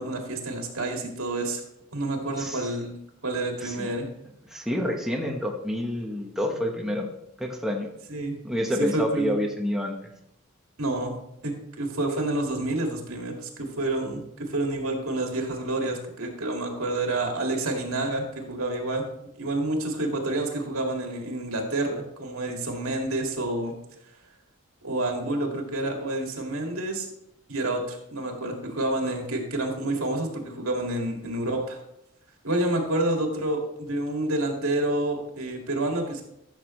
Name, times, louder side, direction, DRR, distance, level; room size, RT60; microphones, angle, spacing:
voice 1, 0.0-1.6 1.9-2.9 3.2-4.1 8.1-8.4 8.8-9.4 10.8-11.1 11.4-19.0 19.4-23.7 24.8-27.1 27.5-31.8 32.4-36.2, right 2 dB, 85° right, 2 dB, 2.1 m, -28 dB
voice 2, 2.4-2.7 3.6-3.9 4.5-7.1 7.4-7.9 8.4-10.0, left 1 dB, ahead, 0 dB, 1.0 m, -28 dB
14.0 x 6.6 x 3.2 m, 0.80 s
head